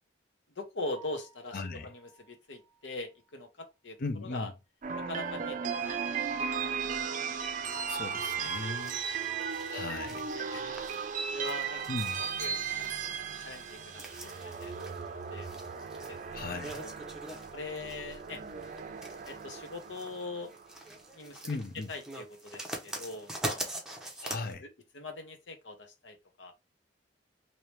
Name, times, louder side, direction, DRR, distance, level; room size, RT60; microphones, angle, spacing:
voice 1, 0.6-4.0 4.3-4.5 5.1-6.0 6.3-6.7 9.2-9.5 10.3-10.8 11.3-11.8 12.1-13.0 13.4-15.5 15.9-16.4 16.8-16.9 17.5-18.4 19.3-20.5 21.1-21.6 21.9-23.6 24.6-24.7 24.9-26.5, left 2 dB, 90° left, 0.9 m, -42 dB
Piano, 0.9-4.9 5.2-5.3 5.8-5.9 6.3-6.4 9.5-9.6 18.1-18.3, right 4 dB, 25° left, 1.1 m, -60 dB
voice 2, 1.5-1.9 4.0-4.5 7.9-9.0 9.7-10.3 11.9-12.2 16.3-16.8 21.5-21.9 24.2-24.7, left 3 dB, 55° left, 0.6 m, -37 dB
sound 1, 4.8-21.0, right 6 dB, 45° right, 0.5 m, -36 dB
sound 2, 7.7-24.5, right 1 dB, 5° right, 0.7 m, -44 dB
3.0 x 2.8 x 3.2 m
head